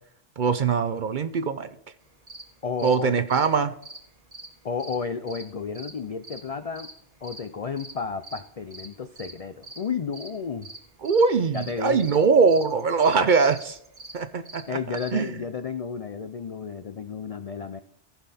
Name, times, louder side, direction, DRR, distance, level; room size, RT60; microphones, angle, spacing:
voice 1, 0.4-1.7 2.8-3.8 11.0-13.8 14.1-15.3, right 5 dB, 55° right, 12 dB, 0.7 m, -22 dB
sound 1, 2.0-15.1, right 2 dB, 30° right, 1.4 m, -45 dB
voice 2, 2.6-3.2 4.6-6.9 7.2-10.7 11.5-12.1 14.7-17.8, left 6 dB, 55° left, 10 dB, 0.4 m, -32 dB
15.0 x 5.8 x 4.2 m, 0.72 s
omnidirectional pair, 1.2 m